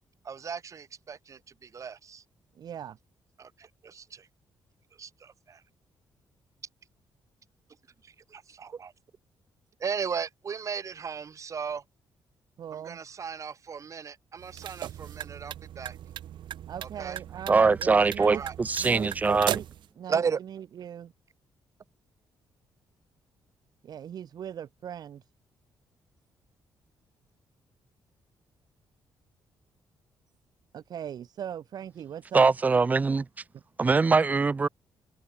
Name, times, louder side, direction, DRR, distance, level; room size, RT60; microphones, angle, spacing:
voice 1, 0.2-2.2 3.4-4.3 4.9-5.6 8.0-8.9 9.8-11.8 12.7-16.0 16.8-17.2 18.3-18.6 19.3-19.4 20.1-20.4, right 6 dB, 40° right, 5.2 m, -36 dB
voice 2, 2.5-3.0 12.6-13.0 16.7-18.4 18.8-19.6 20.0-20.2 20.5-21.1 23.8-25.2 30.7-32.5, right 9 dB, 55° right, 0.9 m, -39 dB
sound 1, 14.4-19.9, right 11 dB, 75° right, 2.9 m, -38 dB
voice 3, 17.5-19.6 32.3-33.3 33.8-34.7, right 4 dB, 20° right, 0.4 m, -22 dB
cardioid pair, 125°, 8 cm